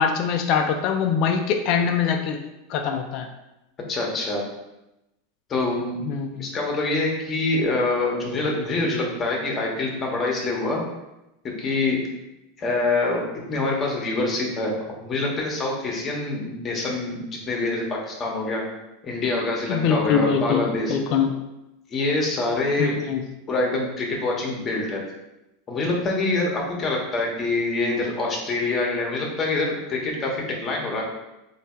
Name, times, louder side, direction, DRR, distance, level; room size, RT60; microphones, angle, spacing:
voice 1, 0.0-2.4 2.7-3.3 6.0-6.4 19.7-20.6 20.9-21.3 22.8-23.2, left 7 dB, 55° left, 4 dB, 0.4 m, -23 dB
voice 2, 3.9-4.4 5.5-6.0 6.4-10.8 11.4-12.0 12.6-14.7 15.0-18.6 19.0-20.9 21.9-23.0 23.5-25.0 25.7-31.0, left 2 dB, 30° left, -1 dB, 1.1 m, -25 dB
3.3 x 2.8 x 4.3 m, 0.94 s
hypercardioid pair, 100°, 0 cm